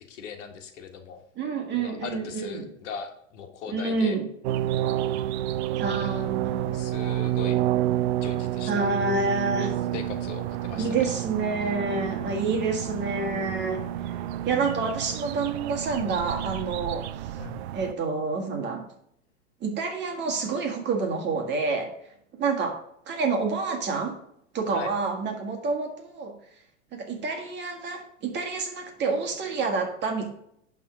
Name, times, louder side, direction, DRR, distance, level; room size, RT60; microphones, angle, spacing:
voice 1, 0.1-1.2 1.7-4.2 6.7-7.6 8.1-8.8 9.9-11.1 17.4-17.6 24.7-24.9, left 6 dB, 65° left, 4 dB, 1.6 m, -39 dB
voice 2, 1.4-2.7 3.7-4.3 5.8-6.8 8.7-9.8 10.7-14.2 14.4-17.3 17.7-18.9 19.6-21.9 22.3-24.2 24.5-26.3 26.9-30.3, right 4 dB, 25° right, 3 dB, 1.7 m, -28 dB
sound 1, 4.4-17.9, right 13 dB, 55° right, 0.5 m, -29 dB
11.0 x 3.7 x 4.8 m, 0.71 s
hypercardioid pair, 115°, 39 cm